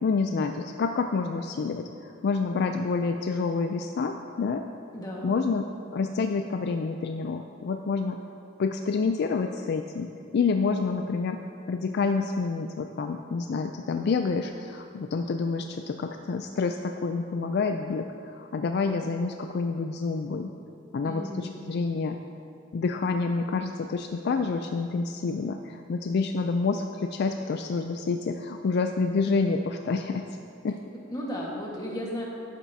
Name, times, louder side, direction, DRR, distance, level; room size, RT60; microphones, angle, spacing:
voice 1, 0.0-4.6 5.2-5.7 5.9-8.2 8.6-11.4 11.7-20.5 20.9-22.2 22.7-30.2 30.6-30.8, left 4 dB, 55° left, 5 dB, 0.3 m, -28 dB
voice 2, 4.9-5.3 21.0-21.5 31.1-32.2, equal, 20° left, -3 dB, 1.5 m, -34 dB
12.0 x 9.0 x 2.7 m, 2.5 s
head